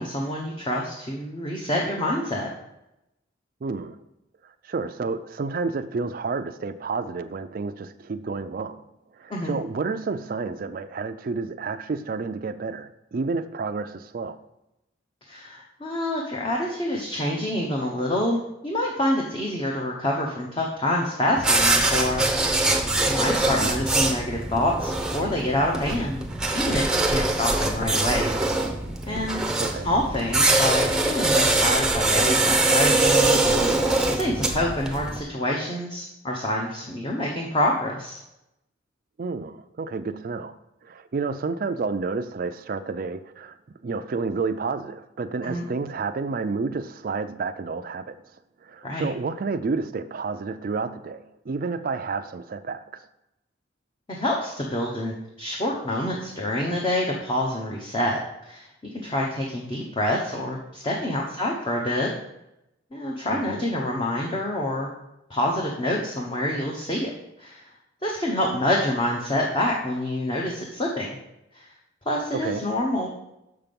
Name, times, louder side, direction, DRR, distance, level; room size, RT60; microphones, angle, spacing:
voice 1, 0.0-2.5 9.3-9.6 15.3-22.3 22.5-26.2 26.5-28.4 29.0-29.4 29.8-38.2 45.4-45.6 48.8-49.1 54.1-58.7 58.9-62.1 62.9-64.9 65.3-67.1 67.4-67.6 68.0-71.1 71.5-71.6 72.1-73.1, left 1 dB, 25° left, 0.9 m, -27 dB
voice 2, 3.6-4.0 4.6-8.8 9.1-14.4 23.6-23.9 29.6-29.9 39.2-40.5 40.8-43.6 43.8-48.2 48.6-53.0 63.3-63.6 72.3-72.7, right 4 dB, 50° right, 0.4 m, -30 dB
sound 1, 21.4-35.2, right 2 dB, 5° right, 0.7 m, -23 dB
6.7 x 5.8 x 5.2 m
head